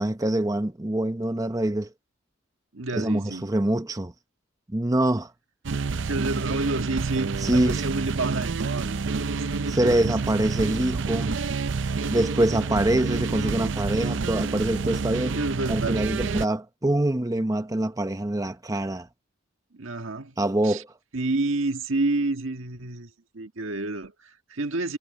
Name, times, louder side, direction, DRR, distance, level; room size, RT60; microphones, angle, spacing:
voice 1, 0.0-1.9 2.9-4.1 4.7-5.3 7.4-7.8 9.7-11.4 12.1-15.4 15.7-19.1 20.4-20.9, right 1 dB, 15° right, 0.8 m, -25 dB
voice 2, 2.7-3.5 6.0-10.1 15.3-16.0 19.7-20.3 20.6-20.8 21.1-25.0, right 2 dB, 85° right, 1.6 m, -29 dB
sound 1, 5.6-16.4, right 4 dB, 65° right, 0.6 m, -28 dB
head